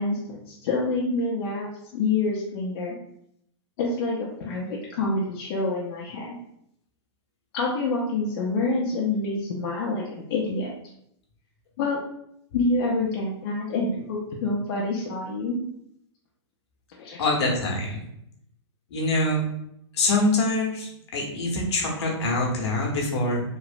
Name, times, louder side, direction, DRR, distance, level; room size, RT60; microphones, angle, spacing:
voice 1, 0.0-3.0 3.8-6.4 7.5-10.7 11.8-12.0 12.5-15.6 17.0-17.3, left 3 dB, 55° left, -4 dB, 0.6 m, -27 dB
voice 2, 17.2-18.0 18.9-19.4 20.0-23.4, left 2 dB, 70° left, -1 dB, 0.9 m, -24 dB
3.0 x 2.0 x 2.5 m, 0.74 s
hypercardioid pair, 145°, 14 cm